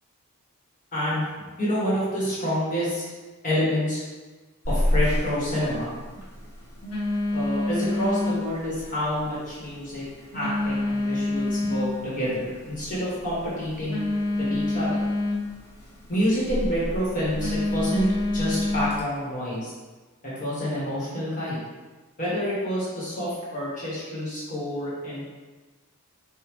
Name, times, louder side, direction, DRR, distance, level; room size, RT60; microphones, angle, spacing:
voice 1, 0.9-3.0 3.4-4.0 4.7-5.9 7.3-10.0 10.3-14.0 14.4-15.0 16.1-18.1 18.3-19.7 20.2-21.6 22.2-25.2, equal, 35° left, -8 dB, 1.5 m, -28 dB
Telephone, 4.6-19.0, left 1 dB, 80° left, 1.2 m, -28 dB
5.4 x 2.6 x 3.2 m, 1.3 s
head